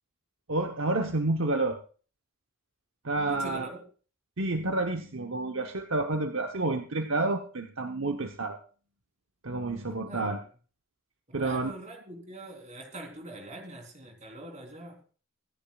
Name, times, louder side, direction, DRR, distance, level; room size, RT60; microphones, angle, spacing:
voice 1, 0.5-1.8 3.0-3.7 4.4-8.6 9.4-10.4 11.3-11.7, right 2 dB, 60° right, 1.0 m, -29 dB
voice 2, 3.3-3.8 9.9-10.4 11.4-15.0, right 1 dB, 35° right, 3.6 m, -43 dB
25.5 x 10.5 x 2.4 m
head